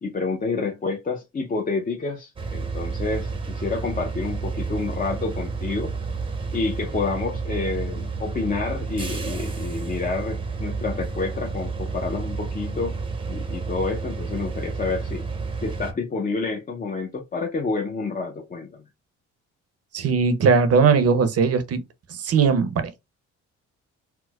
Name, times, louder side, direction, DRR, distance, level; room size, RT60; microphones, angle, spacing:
voice 1, 0.0-5.9 6.5-13.0 13.3-15.2 15.6-18.8, left 4 dB, 30° left, 0.5 m, -29 dB
sound 1, 2.4-15.9, right 4 dB, 15° right, 0.6 m, -30 dB
voice 2, 19.9-21.8 22.2-23.1, right 5 dB, 55° right, 0.7 m, -19 dB
4.3 x 2.0 x 2.2 m
cardioid pair, 90°, 30 cm